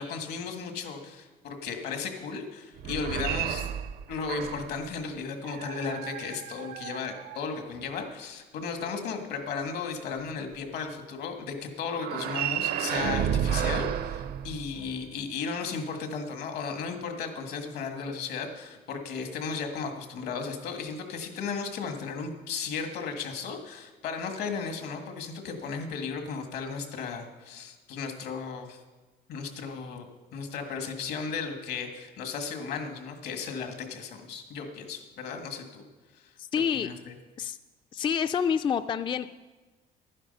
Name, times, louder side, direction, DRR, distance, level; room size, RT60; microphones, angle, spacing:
voice 1, 0.0-3.7 4.1-28.8 29.3-30.1 30.3-35.8 36.1-36.3 36.7-37.2, left 5 dB, 75° left, 5 dB, 1.7 m, -35 dB
sound 1, 2.8-4.8 5.4-7.8 11.9-15.1, right 10 dB, 65° right, 0.6 m, -32 dB
voice 2, 36.5-36.9 37.4-37.6 37.9-39.3, left 7 dB, 30° left, 10 dB, 0.3 m, -27 dB
11.5 x 9.9 x 5.4 m, 1.2 s
cardioid pair, 110°, 17 cm